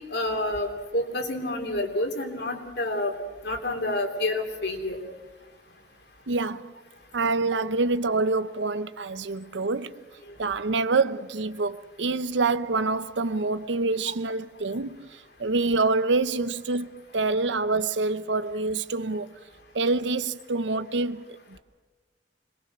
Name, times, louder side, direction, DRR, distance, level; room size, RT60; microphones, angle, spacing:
voice 1, 0.1-3.2 3.4-5.0, left 1 dB, 65° left, 3.3 m, -28 dB
voice 2, 6.3-6.7 7.1-10.0 10.4-15.1 15.4-19.4 19.7-21.2, right 3 dB, 80° right, 0.7 m, -26 dB
26.0 x 22.0 x 6.1 m
head